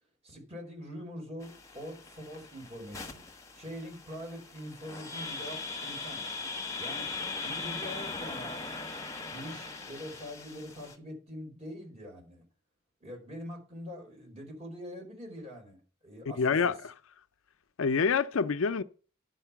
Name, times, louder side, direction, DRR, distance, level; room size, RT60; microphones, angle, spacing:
voice 1, 0.2-3.2 3.5-6.2 6.8-7.1 7.4-8.8 9.1-12.4 13.0-16.7, equal, 30° right, 4.6 m, -44 dB
sound 1, 1.4-11.0, left 3 dB, 15° left, 1.2 m, -40 dB
voice 2, 16.4-16.9 17.8-18.8, left 5 dB, 75° left, 0.5 m, -27 dB
11.0 x 5.4 x 6.9 m
head